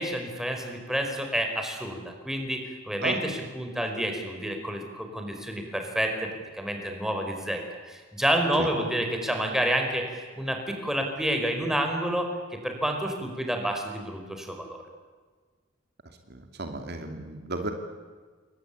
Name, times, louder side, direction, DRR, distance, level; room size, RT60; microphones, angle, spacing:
voice 1, 0.0-6.3 6.6-7.6 7.8-12.3 12.6-14.8, equal, ahead, 3 dB, 5.0 m, -29 dB
voice 2, 16.3-17.7, right 2 dB, 60° right, 5 dB, 2.8 m, -34 dB
29.5 x 22.5 x 8.7 m, 1.5 s
head